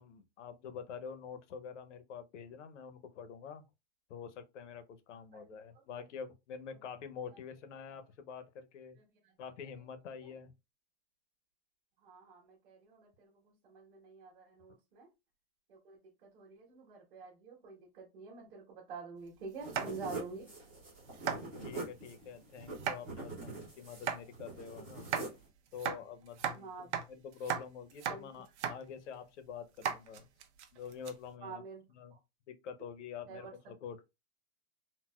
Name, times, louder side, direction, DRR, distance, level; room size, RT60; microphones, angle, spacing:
voice 1, 0.0-3.6 4.1-9.0 9.4-10.5 21.6-25.1 25.7-30.2 30.7-31.6 31.9-32.1 32.5-34.0, left 6 dB, 90° left, 0.7 m, -47 dB
voice 2, 5.3-6.1 6.7-6.8 7.3-7.4 9.0-9.4 10.2-10.3 12.0-15.1 15.7-20.5 26.5-26.9 28.1-28.4 31.4-32.2 33.3-33.7, right 4 dB, 45° right, 1.2 m, -48 dB
sound 1, 19.6-25.5, right 2 dB, 10° right, 0.3 m, -45 dB
sound 2, 19.6-20.2 20.7-20.8 21.1-21.4 22.7-23.0 23.9-24.2 25.0-25.3 25.7-26.6 26.9-27.1 27.3-27.6 27.9-28.2 28.5-28.8 29.1-29.2 29.8-31.1, right 8 dB, 70° right, 0.7 m, -36 dB
4.0 x 2.1 x 2.3 m
supercardioid pair, 180°, 35 cm